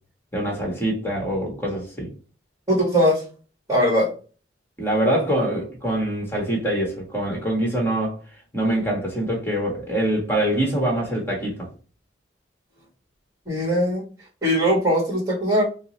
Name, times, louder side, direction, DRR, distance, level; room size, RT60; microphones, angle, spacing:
voice 1, 0.3-2.1 4.8-8.2 8.5-11.7, right 1 dB, 10° left, 1.3 m, -24 dB
voice 2, 2.7-3.2 3.7-4.1 13.5-14.0 14.4-15.6, equal, 20° right, 1.3 m, -20 dB
4.7 x 2.0 x 2.8 m
head